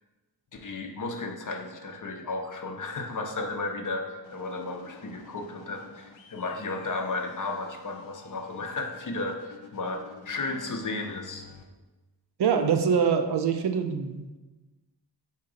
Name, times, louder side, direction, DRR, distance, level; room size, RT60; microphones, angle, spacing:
voice 1, 0.5-11.5, left 3 dB, 45° left, 4 dB, 0.6 m, -34 dB
sound 1, 4.2-11.6, left 5 dB, 90° left, 0.6 m, -51 dB
voice 2, 12.4-14.4, right 6 dB, 65° right, 7 dB, 0.5 m, -24 dB
3.8 x 2.8 x 4.9 m, 1.2 s
wide cardioid pair, 75°, 45 cm